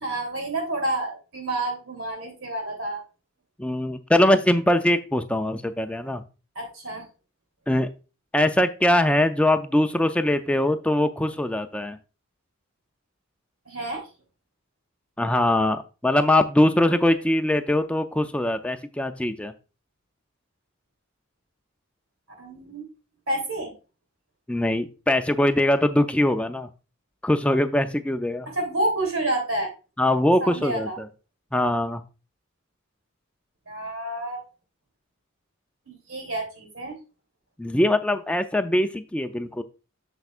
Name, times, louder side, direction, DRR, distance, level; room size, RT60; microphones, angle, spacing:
voice 1, 0.0-3.0 6.5-7.0 13.6-14.0 22.4-22.9 23.3-23.7 28.5-29.7 30.4-31.0 33.7-34.4 35.9-37.0, right 1 dB, 85° right, 1 dB, 3.1 m, -29 dB
voice 2, 3.6-6.2 7.7-7.9 8.3-12.0 15.2-19.5 24.5-26.7 27.2-28.5 30.0-30.9 31.5-32.0 37.6-39.6, left 1 dB, 5° left, 8 dB, 0.4 m, -22 dB
7.8 x 7.0 x 2.4 m, 0.31 s
head